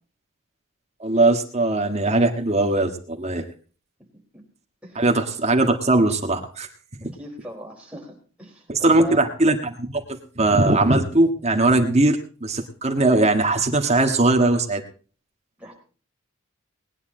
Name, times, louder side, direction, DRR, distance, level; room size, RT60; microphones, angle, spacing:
voice 1, 1.0-3.4 4.9-6.7 8.7-14.8, right 2 dB, 30° right, 4 dB, 1.6 m, -20 dB
voice 2, 7.2-9.2 15.6-15.8, right 1 dB, 5° right, -2 dB, 4.2 m, -38 dB
20.0 x 9.7 x 3.9 m, 0.39 s
head